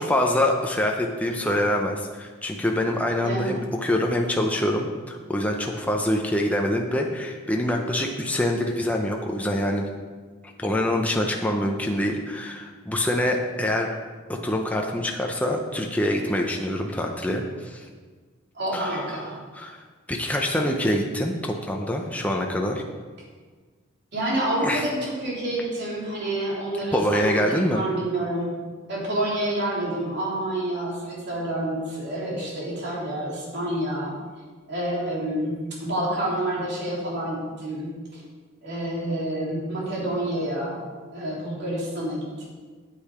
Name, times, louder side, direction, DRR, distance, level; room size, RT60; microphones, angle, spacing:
voice 1, 0.0-9.9 10.4-13.9 14.3-17.9 18.7-19.0 19.5-22.8 24.6-24.8 26.9-27.8, left 1 dB, 5° left, 1 dB, 0.7 m, -25 dB
voice 2, 3.2-3.6 18.5-19.4 24.1-28.6 28.9-34.2 34.7-38.2 38.6-40.8 41.1-42.5, right 1 dB, 60° right, -5 dB, 3.5 m, -28 dB
8.6 x 8.5 x 5.0 m, 1.5 s
head